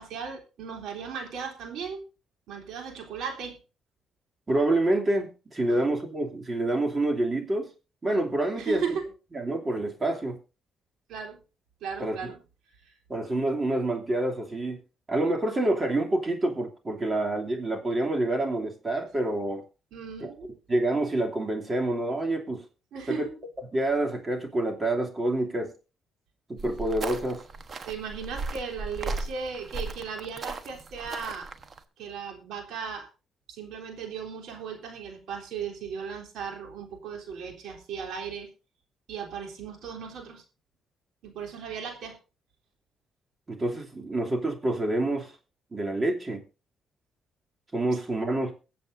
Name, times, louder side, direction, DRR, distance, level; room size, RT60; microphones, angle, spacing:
voice 1, 0.0-2.0 2.5-3.6 5.7-5.8 8.6-9.1 11.1-11.4 11.8-12.4 12.8-12.9 19.9-20.5 22.9-23.3 27.8-31.5 32.0-33.1 33.5-38.5 39.1-40.4 41.2-42.2, right 6 dB, 80° right, 3 dB, 3.5 m, -36 dB
voice 2, 4.5-7.7 8.0-8.8 9.3-10.4 12.0-12.3 13.1-14.8 15.1-19.6 20.7-22.6 23.1-23.2 23.7-25.7 26.5-27.4 43.5-45.3 45.7-46.4 47.7-48.5, right 1 dB, 30° right, 2 dB, 2.9 m, -27 dB
sound 1, 26.6-31.8, right 3 dB, 45° right, 1.2 m, -36 dB
23.0 x 7.8 x 2.7 m, 0.31 s
cardioid pair, 90°, 0 cm